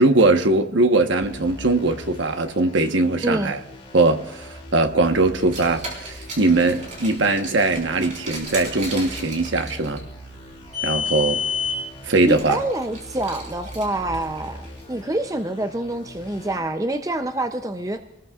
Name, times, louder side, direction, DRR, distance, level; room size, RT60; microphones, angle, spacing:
voice 1, 0.0-3.6 3.9-10.0 10.8-11.4 12.0-12.6, right 2 dB, 70° right, 1.1 m, -20 dB
sound 1, 1.2-16.6, equal, 30° left, 2.8 m, -42 dB
Car, 5.3-14.8, left 4 dB, 40° right, 4.2 m, -32 dB
voice 2, 12.3-18.0, right 1 dB, 15° right, 0.5 m, -26 dB
26.0 x 19.5 x 2.4 m
head